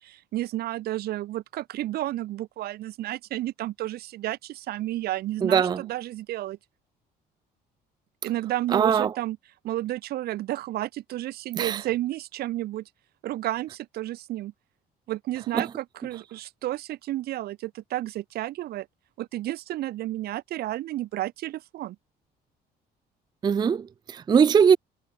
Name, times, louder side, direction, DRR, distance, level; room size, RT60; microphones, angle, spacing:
voice 1, 0.0-6.6 8.2-9.4 9.6-12.9 13.2-14.5 15.1-18.9 19.2-22.0, right 15 dB, 65° right, 0.8 m, -31 dB
voice 2, 5.4-5.8 8.7-9.1 11.6-11.8 15.5-15.7 23.4-24.8, right 7 dB, 25° right, 0.4 m, -21 dB
cardioid pair, 110°, 17 cm